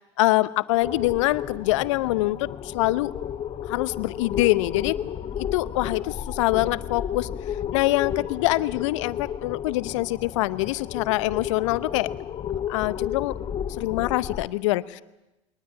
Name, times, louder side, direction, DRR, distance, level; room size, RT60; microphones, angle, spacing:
voice 1, 0.0-3.1 3.7-5.1 5.4-7.3 7.7-12.1 12.7-13.3 13.8-15.0, left 18 dB, 70° left, 19 dB, 0.8 m, -24 dB
sound 1, 0.8-14.5, left 9 dB, 35° left, 0.9 m, -33 dB
22.0 x 19.5 x 8.6 m, 0.97 s
hypercardioid pair, 75°, 17 cm